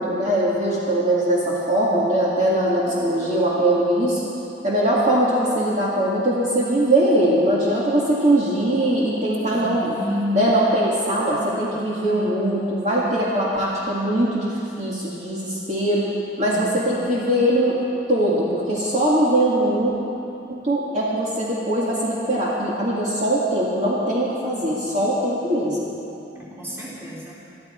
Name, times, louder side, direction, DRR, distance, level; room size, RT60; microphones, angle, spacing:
voice 1, 0.0-4.2 4.6-9.9 10.3-16.1 16.4-17.8 18.1-19.9 20.5-25.9, right 1 dB, 40° right, -7 dB, 2.1 m, -21 dB
voice 2, 9.5-10.5 16.4-17.0 26.3-27.4, left 1 dB, 15° right, -6 dB, 3.0 m, -31 dB
22.0 x 12.5 x 4.5 m, 2.8 s
head